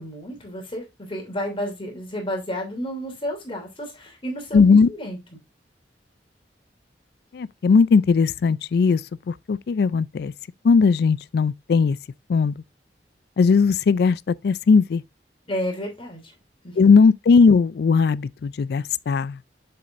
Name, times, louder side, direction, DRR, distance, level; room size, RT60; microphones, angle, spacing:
voice 1, 0.0-5.2 15.5-16.3 16.6-17.0, equal, 30° left, 2.8 m, -31 dB
voice 2, 4.5-4.9 7.3-9.0 9.3-10.3 10.6-12.0 12.3-12.6 13.4-15.0 16.8-19.5, left 5 dB, 60° left, 0.3 m, -18 dB
7.0 x 6.5 x 2.5 m
head